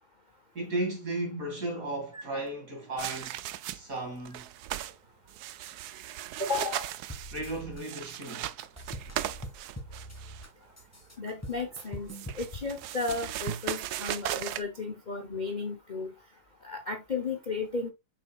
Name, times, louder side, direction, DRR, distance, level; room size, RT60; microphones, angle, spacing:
voice 1, 0.5-3.3 3.7-4.4 7.3-8.5, right 2 dB, 40° right, 2.7 m, -34 dB
sound 1, 3.0-4.0 4.3-5.0 5.3-10.5 11.8-14.6, right 13 dB, 85° right, 0.8 m, -37 dB
voice 2, 6.4-6.8 11.2-16.1 16.6-17.9, left 4 dB, 70° left, 0.4 m, -34 dB
sound 2, 7.1-7.8 8.1-10.5 10.8-12.4, equal, 10° left, 1.3 m, -43 dB
7.0 x 5.6 x 2.4 m
omnidirectional pair, 2.3 m